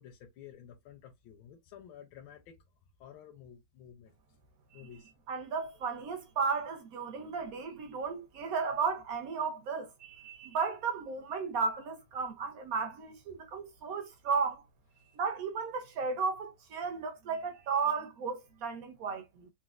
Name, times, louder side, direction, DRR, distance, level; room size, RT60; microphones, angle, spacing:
voice 1, 0.0-2.6 3.0-4.2 4.7-5.1, left 9 dB, 85° left, 1.4 m, -52 dB
voice 2, 5.3-14.6 15.1-19.5, right 5 dB, 65° right, 0.9 m, -34 dB
4.2 x 2.2 x 2.3 m
omnidirectional pair, 2.1 m